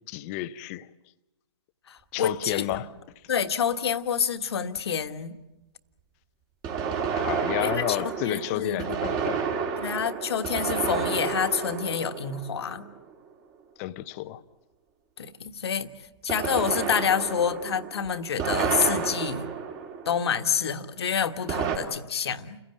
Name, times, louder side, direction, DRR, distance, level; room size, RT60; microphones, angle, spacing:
voice 1, 0.1-0.9 2.1-2.9 7.1-9.4 13.8-14.4, left 16 dB, 30° left, 0.8 m, -31 dB
voice 2, 1.9-2.9 3.3-5.4 7.6-8.8 9.8-12.9 15.2-15.9 16.2-19.5 20.0-22.6, left 7 dB, 60° left, 1.5 m, -28 dB
sound 1, 2.7-2.8 6.6-13.1 16.3-20.5 21.5-21.8, right 6 dB, 25° right, 3.5 m, -30 dB
30.0 x 16.0 x 9.2 m
figure-of-eight pair, 130°, 15 cm